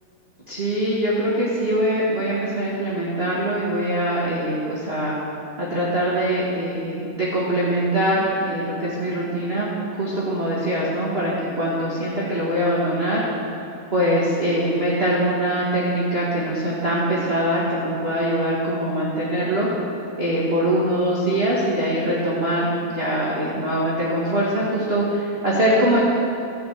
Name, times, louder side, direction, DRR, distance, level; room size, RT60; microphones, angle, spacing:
voice 1, 0.5-5.1 5.6-13.2 13.9-19.7 20.2-26.0, right 1 dB, 30° right, -7 dB, 1.2 m, -23 dB
13.5 x 6.2 x 7.8 m, 2.7 s
omnidirectional pair, 3.8 m